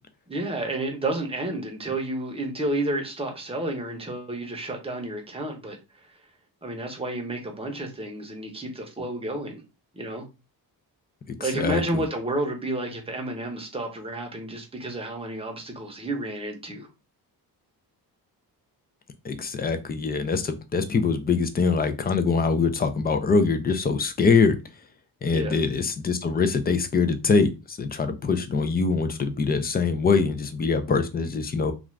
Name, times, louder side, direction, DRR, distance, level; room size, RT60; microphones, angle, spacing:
voice 1, 0.3-6.1 6.6-9.6 9.9-10.2 11.4-16.9 25.3-25.6, right 1 dB, 15° right, 0.7 m, -31 dB
voice 2, 11.3-12.0 19.2-24.6 25.2-31.7, left 4 dB, 25° left, 0.4 m, -23 dB
2.4 x 2.4 x 3.1 m
cardioid pair, 110°, 41 cm